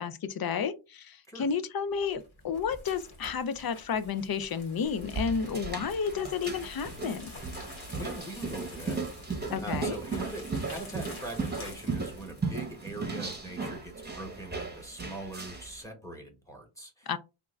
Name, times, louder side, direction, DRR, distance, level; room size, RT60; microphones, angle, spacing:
voice 1, 0.0-7.3 9.5-10.0 17.1-17.2, left 6 dB, 50° left, 0.4 m, -31 dB
sound 1, 2.0-13.7, left 2 dB, 65° left, 1.8 m, -48 dB
sound 2, 4.8-15.8, right 4 dB, 20° right, 0.8 m, -36 dB
voice 2, 8.0-9.0 9.6-17.1, right 1 dB, 5° left, 1.0 m, -42 dB
3.6 x 2.4 x 3.0 m
wide cardioid pair, 115°, 50 cm